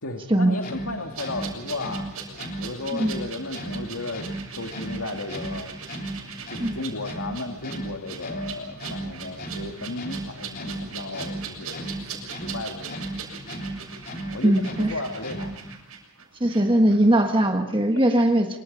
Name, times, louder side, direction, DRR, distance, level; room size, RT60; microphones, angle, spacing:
voice 1, 0.0-2.1 2.6-4.3 4.6-5.8 6.5-12.1 12.4-13.2 14.1-15.6, left 2 dB, 80° left, 3 dB, 2.1 m, -34 dB
sound 1, 0.5-15.8, right 1 dB, 40° left, 3.5 m, -36 dB
sound 2, 1.1-16.6 16.9-17.0, right 6 dB, 85° right, 6.8 m, -40 dB
voice 2, 14.4-14.9 16.4-18.5, right 1 dB, 25° right, 4 dB, 1.4 m, -20 dB
26.0 x 24.0 x 5.4 m, 0.79 s
head